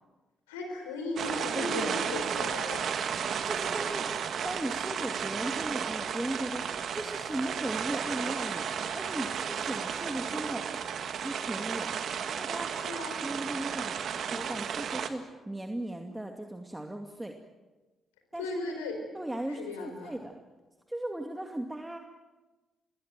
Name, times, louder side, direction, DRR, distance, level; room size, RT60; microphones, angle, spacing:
voice 1, 0.5-3.1 12.9-13.3 18.4-19.0 19.6-20.1, left 2 dB, 85° left, 4 dB, 4.4 m, -36 dB
sound 1, 1.2-15.1, right 7 dB, 60° right, 1.8 m, -33 dB
voice 2, 1.5-2.0 3.4-4.2 4.4-8.6 8.9-10.7 11.2-12.0 12.3-12.8 13.2-17.4 18.3-18.5 19.1-20.3 20.9-22.0, right 1 dB, 10° right, 4 dB, 2.4 m, -37 dB
27.0 x 21.5 x 7.6 m, 1.2 s
hypercardioid pair, 40°, 0 cm